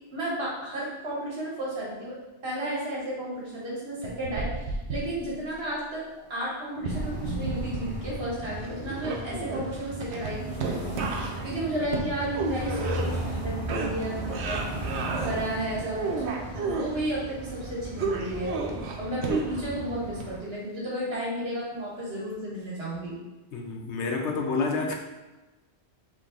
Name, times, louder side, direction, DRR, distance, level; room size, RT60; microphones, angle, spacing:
voice 1, 0.1-2.2 2.4-6.0 6.3-11.0 11.4-14.6 14.9-16.2 16.6-18.6 19.0-23.2, right 1 dB, 60° right, -6 dB, 1.7 m, -33 dB
sound 1, 4.0-5.5 6.8-8.2 8.4-13.4 13.7-15.3 15.7-16.9 18.0-19.8 20.2-20.3, right 3 dB, 80° right, 0.9 m, -32 dB
sound 2, 6.9-20.4, right 1 dB, 10° left, 1.5 m, -36 dB
voice 2, 23.5-24.9, left 4 dB, 85° left, 2 dB, 1.0 m, -28 dB
3.8 x 3.1 x 3.6 m, 1.1 s
omnidirectional pair, 1.1 m